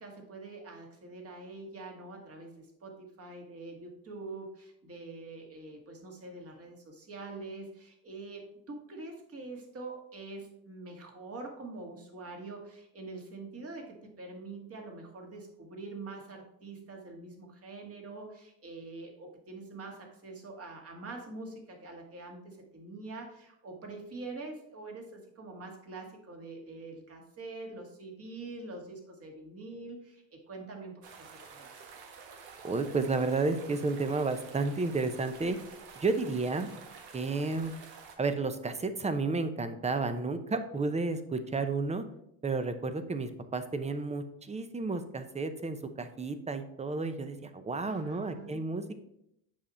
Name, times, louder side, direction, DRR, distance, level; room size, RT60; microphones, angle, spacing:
voice 1, 0.0-31.8 47.8-48.6, right 3 dB, 35° right, 2 dB, 2.2 m, -45 dB
sound 1, 31.0-38.2, right 6 dB, 65° right, 1.5 m, -50 dB
voice 2, 32.6-35.6 36.0-36.7 37.1-37.7 38.2-42.0 42.4-48.9, right 3 dB, 15° right, 10 dB, 0.8 m, -32 dB
7.6 x 5.5 x 4.3 m, 0.77 s
supercardioid pair, 100°, 41 cm